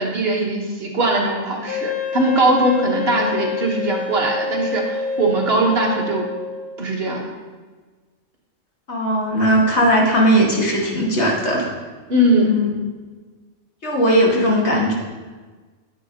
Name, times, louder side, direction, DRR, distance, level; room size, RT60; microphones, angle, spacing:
voice 1, 0.0-6.3 6.8-7.3 12.1-12.5, right 1 dB, 55° right, 0 dB, 1.3 m, -20 dB
Wind instrument woodwind instrument, 1.7-6.7, left 5 dB, 80° left, 1.8 m, -27 dB
voice 2, 8.9-11.7 12.4-12.7 13.8-14.9, equal, 60° left, -3 dB, 1.9 m, -18 dB
9.6 x 8.6 x 2.8 m, 1.4 s
omnidirectional pair, 1.3 m